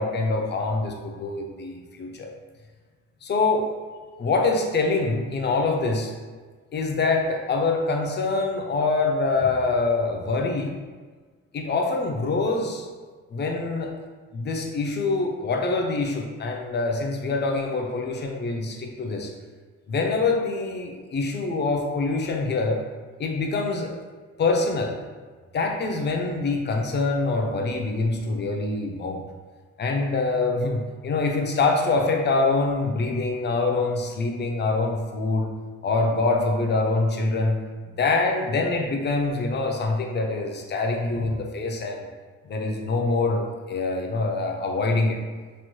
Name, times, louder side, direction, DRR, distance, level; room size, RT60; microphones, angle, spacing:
voice 1, 0.0-2.3 3.2-3.7 4.2-6.1 6.7-10.8 11.5-12.9 13.3-13.9 14.3-19.3 19.9-22.8 23.2-24.0 24.4-25.0 25.5-29.2 29.8-35.5 35.8-37.6 38.0-42.1 42.4-45.2, left 3 dB, 35° left, 2 dB, 0.5 m, -25 dB
3.1 x 2.9 x 2.2 m, 1.4 s
cardioid pair, 90°, 30 cm